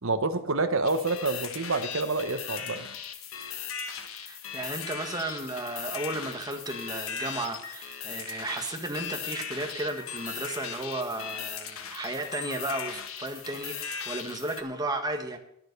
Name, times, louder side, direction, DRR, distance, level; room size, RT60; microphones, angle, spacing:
voice 1, 0.0-2.9, right 3 dB, 65° right, 8 dB, 1.2 m, -28 dB
sound 1, 0.8-14.6, left 7 dB, 70° left, 1.3 m, -38 dB
voice 2, 4.2-15.4, right 2 dB, 20° right, 4 dB, 1.6 m, -34 dB
11.0 x 9.9 x 6.8 m, 0.72 s
head